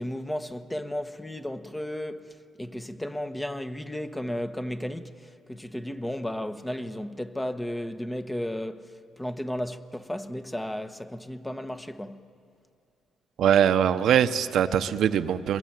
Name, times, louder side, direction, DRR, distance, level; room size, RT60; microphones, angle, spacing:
voice 1, 0.0-12.2, left 1 dB, 10° left, 1.2 m, -34 dB
voice 2, 13.4-15.6, right 9 dB, 70° right, 1.0 m, -22 dB
26.5 x 22.0 x 9.3 m
cardioid pair, 90°, 0 cm